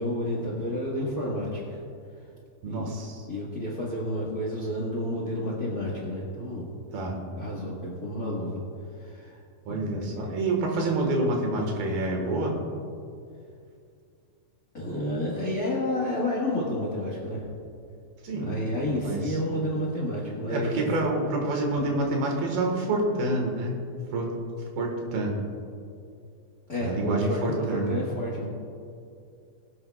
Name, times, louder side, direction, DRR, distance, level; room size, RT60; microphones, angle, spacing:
voice 1, 0.0-1.8 2.6-2.9 3.3-6.6 7.4-8.6 9.0-9.4 9.7-10.3 14.7-17.5 18.3-20.8 26.7-28.5, left 1 dB, 45° left, -4 dB, 1.2 m, -30 dB
voice 2, 2.6-3.3 6.9-7.2 9.7-12.5 18.2-18.5 18.8-19.4 20.5-23.8 24.1-24.3 24.8-25.3 26.8-27.9, right 2 dB, 85° right, 1 dB, 3.4 m, -27 dB
22.0 x 8.6 x 2.4 m, 2.4 s
omnidirectional pair, 4.2 m